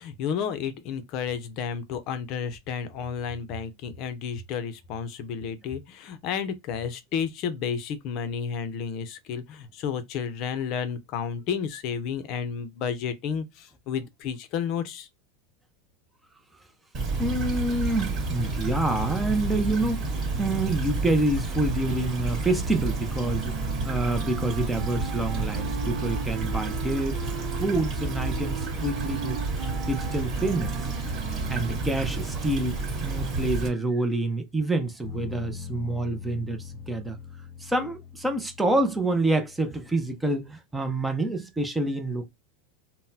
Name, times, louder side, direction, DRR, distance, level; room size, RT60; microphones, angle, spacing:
voice 1, 0.0-15.1, left 7 dB, 45° left, 0.6 m, -31 dB
Stream / Trickle dribble, 16.9-33.7, right 3 dB, 35° right, 1.8 m, -30 dB
voice 2, 17.2-27.2 27.6-29.4 29.8-30.8 31.5-37.2 37.6-42.3, right 2 dB, 5° right, 0.6 m, -27 dB
Wind instrument woodwind instrument, 21.6-33.7, right 7 dB, 60° right, 0.7 m, -40 dB
sound 1, 35.0-40.6, left 6 dB, 10° left, 1.6 m, -42 dB
3.8 x 2.1 x 2.7 m
supercardioid pair, 140°, 0 cm